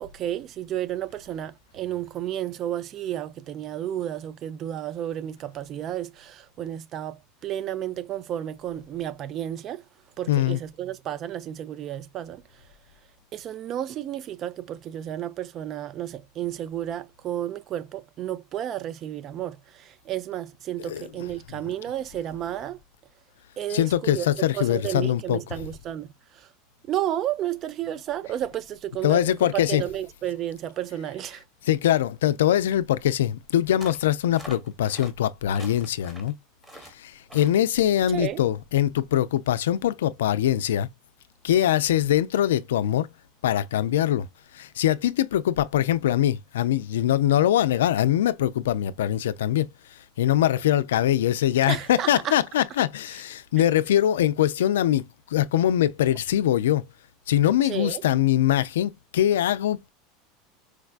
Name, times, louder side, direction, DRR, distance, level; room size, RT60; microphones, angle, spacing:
voice 1, 0.0-9.8 10.2-12.4 13.3-22.8 23.6-26.5 26.9-31.4 38.1-38.4 51.7-52.4 57.6-58.0, right 11 dB, 45° right, 0.4 m, -32 dB
voice 2, 10.3-10.6 20.9-21.0 23.7-25.4 29.0-29.8 31.7-36.4 36.9-40.9 41.4-43.1 43.4-44.3 44.5-49.7 50.2-55.0 55.3-56.8 57.3-59.9, left 12 dB, 90° left, 0.3 m, -22 dB
sound 1, 33.8-34.1 34.4-35.1 35.5-36.3 36.6-36.9 37.3-37.6, right 1 dB, 15° right, 1.1 m, -44 dB
4.6 x 2.2 x 2.4 m
supercardioid pair, 110°, 0 cm